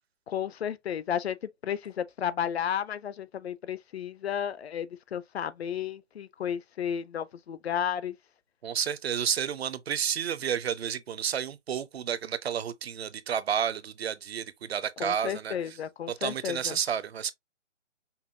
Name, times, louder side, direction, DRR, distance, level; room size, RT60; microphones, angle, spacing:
voice 1, 0.3-1.4 1.6-8.1 15.0-16.8, left 9 dB, 60° left, 0.5 m, -33 dB
voice 2, 8.6-15.5 16.1-17.3, right 8 dB, 55° right, 0.5 m, -31 dB
5.5 x 2.3 x 2.6 m
hypercardioid pair, 155°, 37 cm